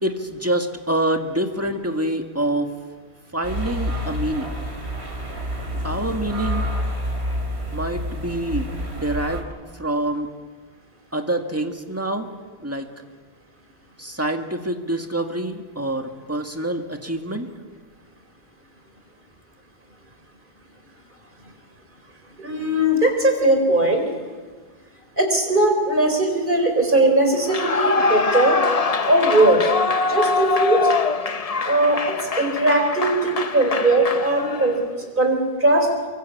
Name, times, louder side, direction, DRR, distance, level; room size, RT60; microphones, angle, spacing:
voice 1, 0.0-2.7 3.3-4.6 5.8-6.7 7.7-10.3 11.1-12.3 12.6-12.9 14.0-17.5, right 1 dB, 15° right, 5 dB, 1.8 m, -26 dB
sound 1, 3.4-9.4, equal, 80° right, 3.6 m, -28 dB
voice 2, 22.4-24.1 25.2-28.6 29.1-29.7 30.1-30.8 31.6-35.9, right 1 dB, 50° right, 4 dB, 4.6 m, -19 dB
Clapping / Cheering / Applause, 27.4-34.8, left 4 dB, 40° left, 0.9 m, -23 dB
24.0 x 23.5 x 8.4 m, 1.4 s
omnidirectional pair, 1.1 m